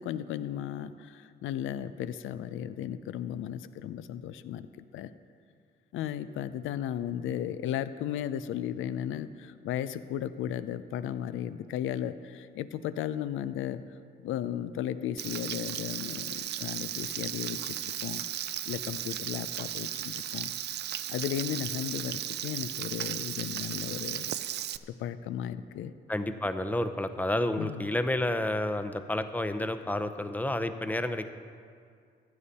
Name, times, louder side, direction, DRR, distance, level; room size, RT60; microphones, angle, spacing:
voice 1, 0.0-4.7 4.9-5.1 5.9-13.8 14.2-17.7 18.0-20.5 21.1-24.3 24.9-25.9 27.6-27.9, left 10 dB, 85° left, 13 dB, 0.6 m, -35 dB
Frying (food), 15.2-24.8, right 11 dB, 60° right, 0.5 m, -35 dB
voice 2, 26.1-31.3, left 1 dB, 10° left, 9 dB, 0.7 m, -30 dB
15.0 x 9.8 x 4.3 m, 2.2 s
cardioid pair, 90°, 20 cm